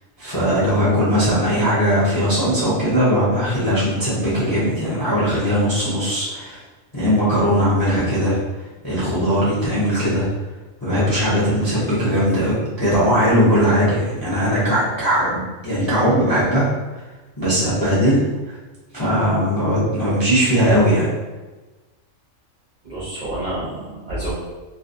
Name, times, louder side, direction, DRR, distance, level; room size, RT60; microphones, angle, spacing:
voice 1, 0.2-6.6 6.9-8.4 8.8-10.3 10.8-16.7 17.4-18.6 18.9-21.1, equal, 35° left, -9 dB, 0.3 m, -19 dB
voice 2, 22.8-24.3, right 1 dB, 55° right, -8 dB, 0.5 m, -28 dB
2.6 x 2.2 x 2.5 m, 1.2 s
omnidirectional pair, 1.3 m